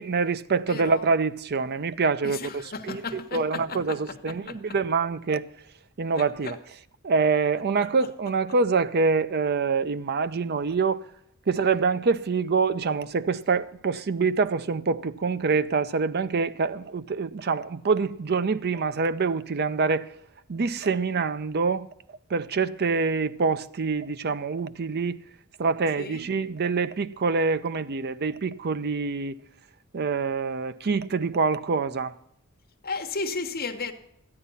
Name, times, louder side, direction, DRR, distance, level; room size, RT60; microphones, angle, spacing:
voice 1, 0.0-3.0 3.3-5.5 6.0-6.6 7.0-11.0 11.5-20.1 20.5-21.9 22.3-25.2 25.6-29.4 29.9-32.1, right 4 dB, 50° right, 0.5 m, -25 dB
voice 2, 0.6-1.0 2.2-4.6 6.2-6.6 7.8-8.1 26.0-26.2 32.8-33.9, left 4 dB, 45° left, 1.3 m, -34 dB
13.0 x 9.8 x 5.6 m
head